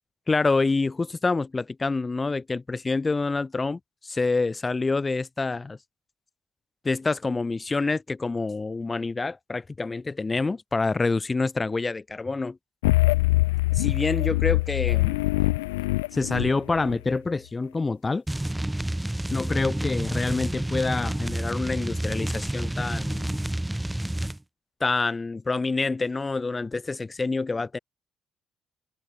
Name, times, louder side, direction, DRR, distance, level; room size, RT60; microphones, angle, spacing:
voice 1, 0.3-5.8 6.8-12.6 13.7-15.2 16.1-18.2 19.3-23.4 24.8-27.8, left 3 dB, 25° left, 1.5 m, -27 dB
sound 1, 12.8-17.0, left 20 dB, 85° left, 0.4 m, -23 dB
sound 2, 18.3-24.4, right 1 dB, 10° right, 0.9 m, -29 dB
hypercardioid pair, 50°, 0 cm